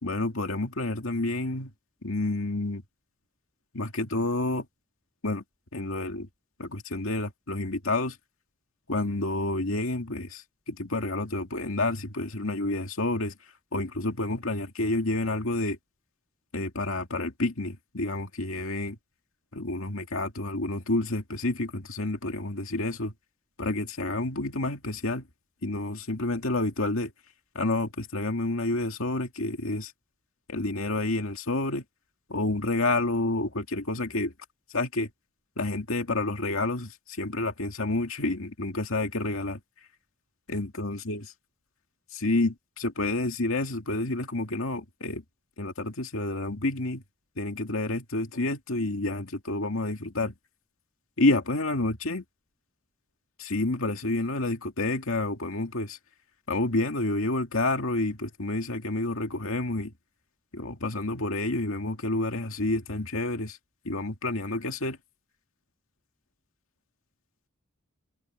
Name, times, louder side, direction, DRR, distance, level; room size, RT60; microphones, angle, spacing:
voice 1, 0.0-1.7 2.0-2.8 3.7-4.7 5.2-5.4 5.7-6.3 6.6-8.2 8.9-13.3 13.7-15.8 16.5-19.0 19.5-23.1 23.6-25.2 25.6-27.1 27.5-29.9 30.5-31.8 32.3-34.3 34.7-35.1 35.6-39.6 40.5-41.2 42.1-45.2 45.6-47.0 47.4-50.3 51.2-52.2 53.4-56.0 56.5-59.9 60.5-63.6 63.8-65.0, left 2 dB, 70° left, 2.3 m, -29 dB
head